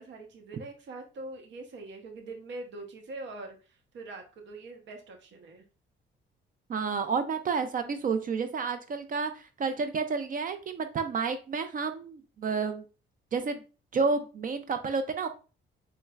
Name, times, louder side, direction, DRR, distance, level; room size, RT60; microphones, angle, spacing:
voice 1, 0.0-5.6, right 2 dB, 65° right, 4 dB, 0.9 m, -43 dB
voice 2, 6.7-12.8 13.3-13.6 13.9-15.3, right 5 dB, 45° right, 9 dB, 0.5 m, -30 dB
4.1 x 3.2 x 2.3 m, 0.34 s
cardioid pair, 90°, 20 cm